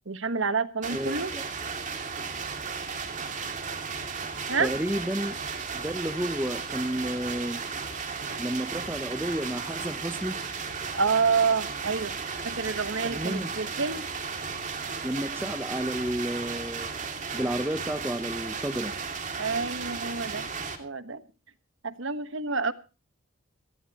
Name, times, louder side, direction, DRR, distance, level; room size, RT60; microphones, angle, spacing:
voice 1, 0.1-1.3 4.5-4.7 10.9-12.1 12.4-14.0 19.4-20.5 20.8-21.2 21.8-22.7, right 5 dB, 65° right, 12 dB, 1.3 m, -28 dB
sound 1, 0.8-20.8, right 5 dB, 35° right, 2.6 m, -35 dB
voice 2, 0.9-1.4 4.6-5.3 5.7-7.6 8.4-10.4 13.0-13.5 15.0-16.9 17.3-18.9, right 1 dB, 10° right, 10 dB, 0.8 m, -31 dB
18.5 x 16.5 x 3.0 m, 0.33 s
head